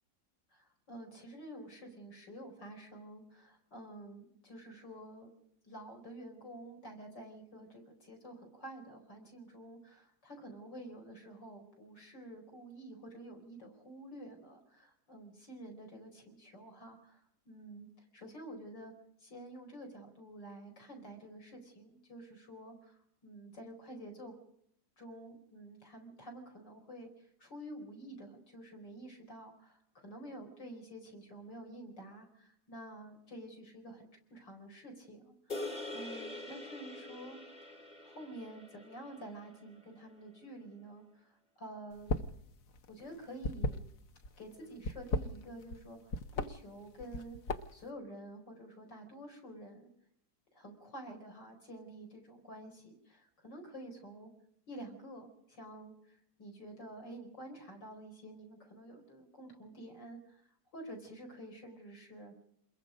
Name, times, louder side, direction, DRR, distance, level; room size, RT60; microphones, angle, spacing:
voice 1, 0.5-5.3 5.6-18.9 19.2-24.3 25.0-37.7 38.0-42.1 42.9-43.8 44.4-47.4 47.7-49.9 50.5-54.3 54.7-60.5 60.7-62.3, right 1 dB, 70° left, 3 dB, 5.2 m, -49 dB
sound 1, 35.5-40.0, left 2 dB, 25° left, 1.6 m, -45 dB
sound 2, 42.0-42.4 42.7-44.3 44.8-45.8 46.1-46.5 47.0-47.8, left 2 dB, 55° left, 1.3 m, -35 dB
27.0 x 21.5 x 5.2 m, 0.73 s
omnidirectional pair, 2.0 m